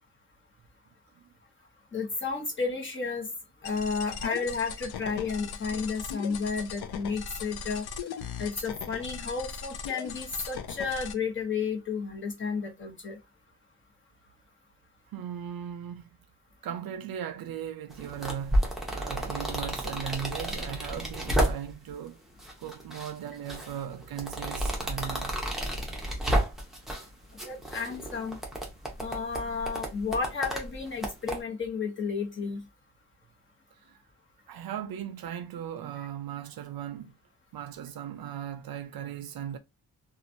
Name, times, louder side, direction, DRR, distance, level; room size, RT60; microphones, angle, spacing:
voice 1, 1.9-3.3 3.6-7.9 8.4-13.2 27.4-28.4 29.0-32.6, left 5 dB, 30° left, 1.0 m, -32 dB
sound 1, 3.6-11.1, left 6 dB, 75° left, 0.5 m, -39 dB
voice 2, 15.1-16.1 16.6-22.2 22.6-25.4 33.8-34.0 34.5-37.2 37.5-39.6, right 9 dB, 65° right, 0.5 m, -38 dB
sound 2, 17.9-21.9 22.4-23.1 23.5-27.1 27.4-31.4, right 1 dB, ahead, 0.8 m, -31 dB
2.9 x 2.4 x 2.6 m
wide cardioid pair, 145°, 39 cm